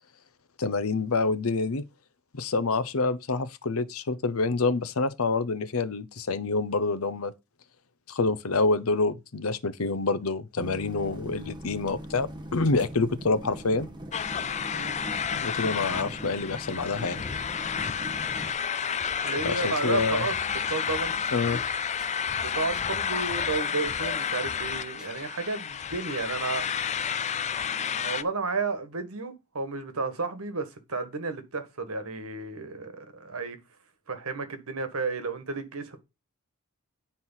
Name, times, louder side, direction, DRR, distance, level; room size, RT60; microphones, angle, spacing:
voice 1, 0.6-1.8 2.3-7.3 8.1-13.9 15.3-17.2 19.4-20.2 21.3-21.6, left 3 dB, 75° left, 0.8 m, -27 dB
sound 1, 10.6-18.5, right 1 dB, 20° right, 1.5 m, -41 dB
sound 2, 14.1-28.2, left 7 dB, 35° left, 0.4 m, -31 dB
voice 2, 14.7-15.1 19.2-20.3 20.7-21.2 21.5-21.6 22.4-26.7 28.0-33.6 34.1-36.0, right 4 dB, 90° right, 1.5 m, -32 dB
sound 3, 19.4-21.7 22.0-24.7 25.0-25.2, equal, 5° right, 1.6 m, -48 dB
9.6 x 4.6 x 5.6 m
head